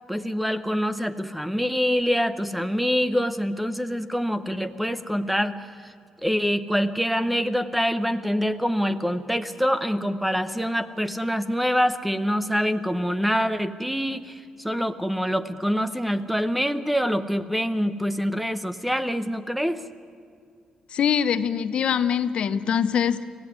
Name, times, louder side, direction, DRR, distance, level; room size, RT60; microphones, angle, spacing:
voice 1, 0.1-5.6 5.8-5.9 6.2-19.8, equal, 5° right, 11 dB, 0.8 m, -25 dB
voice 2, 20.9-23.2, left 8 dB, 55° left, 12 dB, 0.8 m, -23 dB
24.5 x 17.0 x 9.7 m, 2.2 s
cardioid pair, 145°, 2 cm